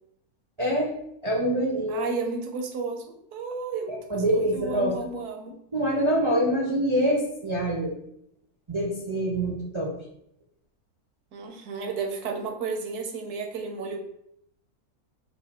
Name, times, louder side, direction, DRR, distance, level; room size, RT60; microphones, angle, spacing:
voice 1, 0.6-0.9 1.2-2.0 3.9-5.0 5.7-7.9 8.7-9.9, right 1 dB, 40° right, -3 dB, 0.4 m, -25 dB
voice 2, 1.9-5.5 11.3-14.0, right 4 dB, 80° right, 3 dB, 1.3 m, -33 dB
4.8 x 2.3 x 4.2 m, 0.74 s
omnidirectional pair, 1.6 m